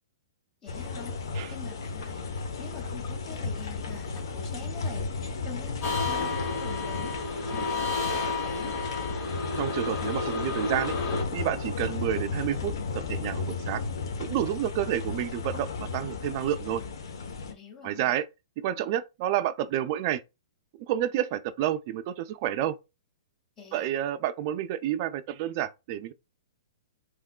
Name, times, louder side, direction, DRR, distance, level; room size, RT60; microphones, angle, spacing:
voice 1, 0.6-1.2 1.5-2.2 2.6-5.1 5.4-8.8 17.5-18.1 23.6-23.9, left 5 dB, 20° left, 1.9 m, -45 dB
sound 1, 0.7-17.5, left 4 dB, 65° left, 0.9 m, -34 dB
sound 2, 5.8-11.2, left 3 dB, 45° left, 1.7 m, -31 dB
voice 2, 9.6-10.9 11.3-12.7 13.1-13.8 14.2-16.8 17.8-18.3 18.6-20.2 20.9-22.8 23.7-26.1, right 11 dB, 45° right, 0.4 m, -29 dB
3.5 x 3.1 x 2.2 m
hypercardioid pair, 120°, 2 cm